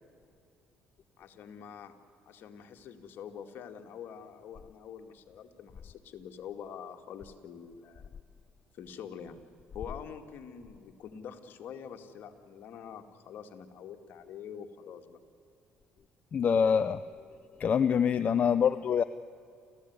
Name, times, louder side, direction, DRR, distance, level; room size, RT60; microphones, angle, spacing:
voice 1, 1.2-1.9 2.3-8.1 8.8-9.4 9.7-15.2, left 7 dB, 60° left, 5 dB, 2.3 m, -45 dB
voice 2, 16.3-17.0 17.6-19.0, left 7 dB, 40° left, 10 dB, 0.7 m, -25 dB
28.5 x 15.0 x 9.7 m, 2.4 s
cardioid pair, 95°, 4 cm